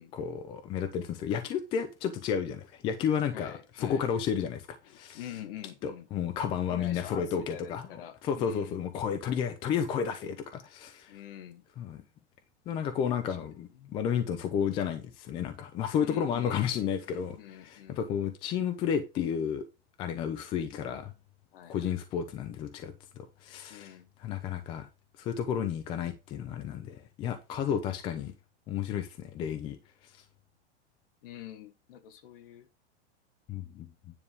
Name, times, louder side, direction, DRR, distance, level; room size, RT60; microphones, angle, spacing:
voice 1, 0.1-5.2 5.8-7.8 8.2-11.2 11.8-12.0 12.7-19.6 20.0-21.1 21.7-24.9 25.2-28.3 28.7-29.8 33.5-33.9, left 8 dB, 15° left, 0.5 m, -32 dB
voice 2, 3.3-4.1 4.8-6.1 6.7-8.8 11.1-11.7 13.2-13.4 13.7-13.9 16.0-18.1 21.5-21.9 23.7-24.1 31.2-32.7, left 11 dB, 55° left, 1.4 m, -46 dB
9.8 x 3.5 x 6.8 m
supercardioid pair, 165°, 34 cm